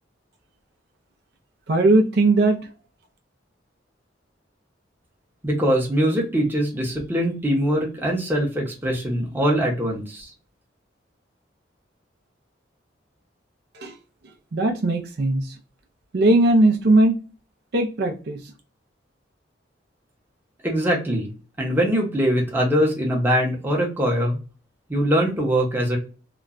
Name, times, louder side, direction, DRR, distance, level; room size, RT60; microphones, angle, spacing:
voice 1, 1.7-2.6 13.7-13.9 14.5-15.5 16.1-17.2 17.7-18.4, right 2 dB, 60° right, 0.5 m, -18 dB
voice 2, 5.4-10.3 20.6-21.3 21.6-24.4 24.9-26.0, equal, 10° right, 0.8 m, -22 dB
2.9 x 2.2 x 2.4 m
head